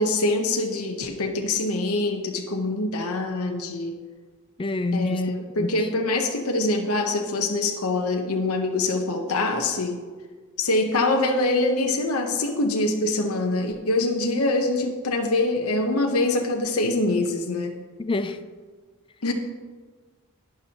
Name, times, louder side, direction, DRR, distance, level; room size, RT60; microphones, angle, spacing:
voice 1, 0.0-3.9 4.9-10.0 10.6-17.7 19.2-19.3, left 2 dB, 75° left, 3 dB, 0.9 m, -24 dB
voice 2, 4.6-5.3 5.6-5.7 18.0-18.4, left 2 dB, 25° left, 10 dB, 0.4 m, -27 dB
11.5 x 9.6 x 2.9 m, 1.4 s
head